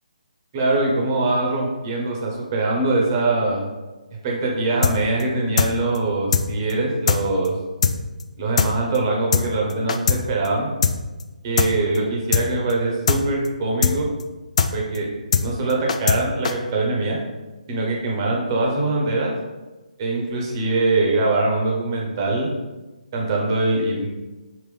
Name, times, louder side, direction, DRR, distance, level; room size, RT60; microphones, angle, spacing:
voice 1, 0.5-3.6 4.2-7.6 8.4-10.7 11.4-14.1 14.7-15.1 15.4-17.2 17.7-19.3 20.0-22.5 23.1-24.1, right 2 dB, 30° right, -2 dB, 1.0 m, -22 dB
sound 1, 4.8-4.9 5.2-5.3 5.6-5.7 5.9-6.0 6.3-6.4 6.7-6.8 7.1-7.2 7.4-7.5 7.8-7.9 8.2-8.3 8.6-8.7 8.9-9.0 9.3-9.4 9.7-10.2 10.4-10.5 10.8-10.9 11.2-11.3 11.6-11.7 11.9-12.0 12.3-12.4 12.7-12.8 13.1-13.2 13.4-13.5 13.8-13.9 14.2-14.3 14.6-14.7 14.9-15.0 15.3-15.4 15.7-16.2 16.4-16.5, left 6 dB, 55° left, 0.3 m, -19 dB
5.2 x 2.9 x 3.4 m, 1.2 s
figure-of-eight pair, 145°, 4 cm